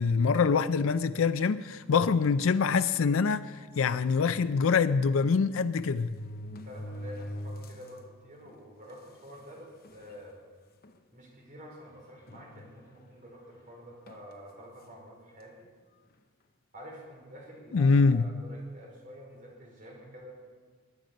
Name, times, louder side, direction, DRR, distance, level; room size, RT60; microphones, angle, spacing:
voice 1, 0.0-6.1 17.7-18.3, left 5 dB, 65° left, 0.4 m, -25 dB
sound 1, 2.1-2.4 3.2-3.3 3.6-3.7 5.0-5.1 5.7-8.0 8.5-8.6 9.4-9.5 9.8-10.2 10.8-11.0 12.3-13.1 14.1-14.3, equal, 45° left, 0.9 m, -43 dB
voice 2, 6.5-10.4 11.1-15.7 16.7-20.3, equal, 35° right, 4.0 m, -48 dB
20.5 x 9.3 x 5.2 m
head